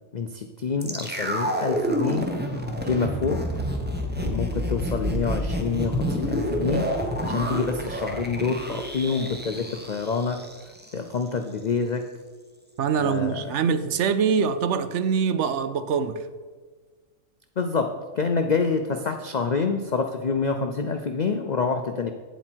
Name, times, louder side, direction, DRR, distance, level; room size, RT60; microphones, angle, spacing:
voice 1, 0.1-2.3 2.8-3.4 4.2-6.9 7.2-12.0 12.9-13.5 17.6-22.1, left 4 dB, 85° left, 0.3 m, -27 dB
sound 1, 0.8-10.9 11.2-11.3, equal, 10° right, 0.8 m, -29 dB
voice 2, 12.8-16.2, right 6 dB, 65° right, 0.8 m, -24 dB
9.3 x 7.5 x 4.5 m
omnidirectional pair, 1.5 m